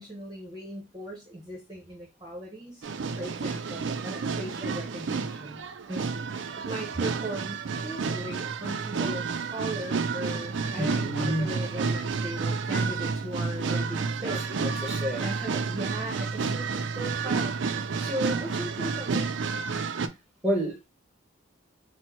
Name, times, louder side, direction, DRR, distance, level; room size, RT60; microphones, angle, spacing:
voice 1, 0.0-2.9 3.2-14.4 15.2-19.3, right 1 dB, 20° right, -2 dB, 0.9 m, -38 dB
sound 1, 2.8-20.1, right 5 dB, 60° right, 0.4 m, -30 dB
voice 2, 10.8-11.5 14.2-15.3 20.4-20.9, equal, 5° right, 0 dB, 1.2 m, -30 dB
4.4 x 2.1 x 4.4 m, 0.26 s
head